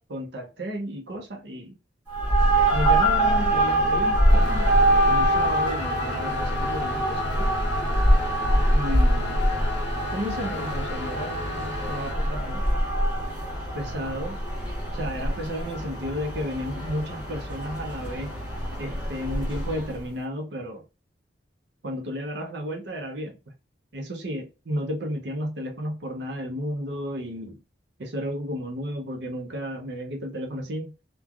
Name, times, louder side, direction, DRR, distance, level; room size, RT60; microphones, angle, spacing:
voice 1, 0.0-1.7 2.7-4.7 5.1-7.5 8.7-9.4 10.1-12.7 13.7-14.4 14.9-18.3 18.8-20.8 21.8-23.4 23.9-27.6 28.0-30.9, equal, 65° right, 0.6 m, -33 dB
sound 1, 2.1-20.0, right 1 dB, 10° right, 1.2 m, -24 dB
sound 2, 4.3-12.2, left 1 dB, 75° left, 0.6 m, -35 dB
3.1 x 2.2 x 2.3 m
head